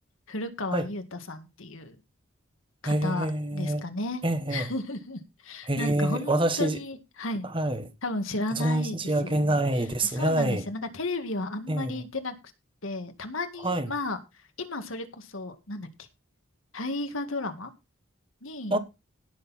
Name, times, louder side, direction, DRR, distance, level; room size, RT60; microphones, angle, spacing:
voice 1, 0.3-2.0 2.8-4.2 4.5-7.5 8.0-9.0 9.2-9.6 10.0-12.3 12.8-14.2 14.6-16.1 16.7-17.7 18.4-18.8, left 2 dB, 75° left, 2.0 m, -34 dB
voice 2, 2.8-3.8 4.2-4.7 5.7-6.8 7.5-7.9 8.5-10.7 11.7-12.0 13.6-13.9 18.7-18.8, right 1 dB, 25° right, 1.3 m, -26 dB
17.0 x 6.8 x 4.3 m
head